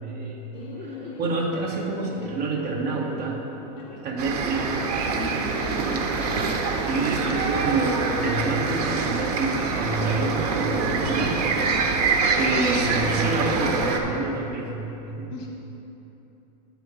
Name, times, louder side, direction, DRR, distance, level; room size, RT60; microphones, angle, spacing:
voice 1, 0.0-3.4 3.9-4.7 5.9-6.0 6.9-11.4 12.3-15.3, right 3 dB, 35° right, -2 dB, 1.4 m, -28 dB
Bird, 0.5-10.2, left 2 dB, 25° left, 1.0 m, -41 dB
sound 1, 4.2-14.0, right 4 dB, 70° right, 1.1 m, -25 dB
voice 2, 5.1-6.5 15.3-15.5, left 3 dB, 45° left, -1 dB, 1.9 m, -38 dB
9.4 x 4.5 x 6.9 m, 3.0 s
supercardioid pair, 160°, 21 cm